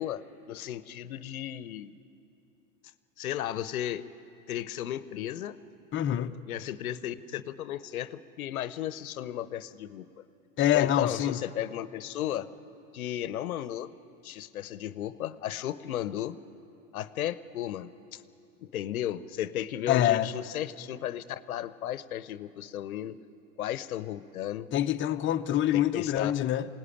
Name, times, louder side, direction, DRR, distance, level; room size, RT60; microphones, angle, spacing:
voice 1, 0.0-2.0 3.2-4.1 4.5-5.6 6.5-10.1 10.7-12.5 12.9-13.9 14.2-16.4 16.9-18.2 18.6-23.2 23.6-24.7 25.7-26.3, left 11 dB, 85° left, 0.8 m, -35 dB
voice 2, 5.9-6.3 10.6-11.4 19.9-20.3 24.7-26.7, left 12 dB, 30° left, 0.8 m, -25 dB
22.5 x 18.0 x 10.0 m
hypercardioid pair, 95°, 42 cm